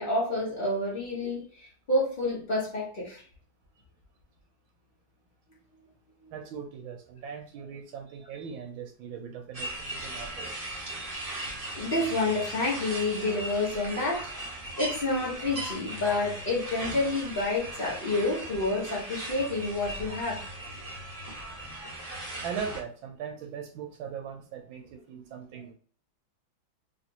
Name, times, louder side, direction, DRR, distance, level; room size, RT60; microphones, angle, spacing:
voice 1, 0.0-3.2 6.2-6.3 11.7-14.3 14.8-20.4, left 2 dB, 35° left, 1.0 m, -29 dB
voice 2, 6.3-11.2 19.9-20.2 21.7-22.1 22.4-25.7, right 7 dB, 80° right, 1.4 m, -40 dB
sound 1, 9.5-22.8, right 1 dB, 25° right, 0.8 m, -38 dB
3.3 x 3.2 x 2.8 m
omnidirectional pair, 2.2 m